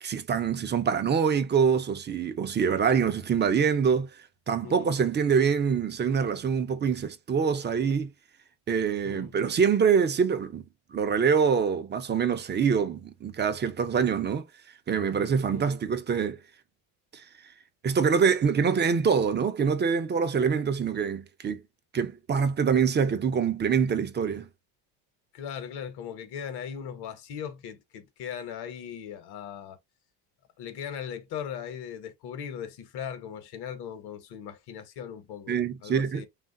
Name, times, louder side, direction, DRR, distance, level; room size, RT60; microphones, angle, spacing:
voice 1, 0.0-4.1 4.5-8.1 8.7-10.6 10.9-14.5 14.9-16.4 17.1-17.2 17.8-21.6 21.9-24.5 35.5-36.2, right 6 dB, 25° right, 0.5 m, -25 dB
voice 2, 25.3-29.8 30.6-36.3, left 8 dB, 55° left, 1.1 m, -39 dB
3.1 x 2.4 x 2.6 m
supercardioid pair, 105°, 47 cm